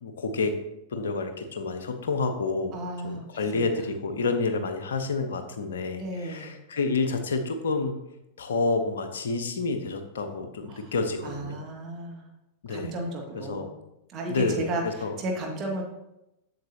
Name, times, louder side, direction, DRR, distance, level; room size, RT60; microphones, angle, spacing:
voice 1, 0.0-0.5 0.9-8.0 8.4-11.6 12.6-12.9 13.3-13.7 14.3-15.2, left 3 dB, 65° left, 7 dB, 0.8 m, -29 dB
voice 2, 2.7-3.2 3.5-3.7 6.0-6.5 10.7-10.9 11.2-12.2 12.7-13.7 14.1-14.8 15.2-15.8, right 2 dB, 35° right, 0 dB, 1.6 m, -33 dB
7.8 x 7.1 x 2.8 m, 0.89 s
figure-of-eight pair, 90°, 0 cm